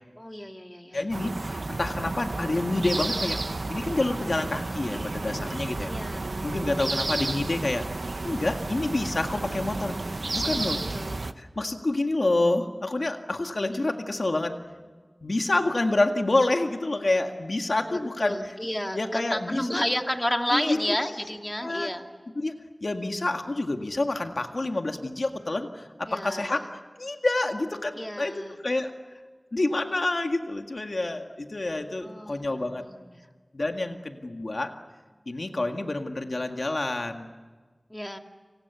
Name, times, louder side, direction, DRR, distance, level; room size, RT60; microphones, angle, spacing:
voice 1, 0.2-1.0 5.9-6.3 10.3-11.3 13.6-14.0 17.9-22.1 26.1-26.6 28.0-28.5 32.0-33.2 37.9-38.2, equal, 15° left, 4 dB, 2.3 m, -32 dB
voice 2, 0.9-3.4 3.7-5.9 6.4-7.9 8.2-10.8 11.4-14.5 15.2-18.6 18.9-19.9 20.5-21.2 21.6-21.9 22.3-22.6 22.8-26.7 27.0-28.9 29.5-32.8 33.5-34.7 35.3-37.3, left 2 dB, 70° left, 5 dB, 1.9 m, -28 dB
sound 1, 1.1-11.3, right 2 dB, 80° right, 1.0 m, -32 dB
30.0 x 28.0 x 7.0 m, 1.4 s
wide cardioid pair, 55°, 0 cm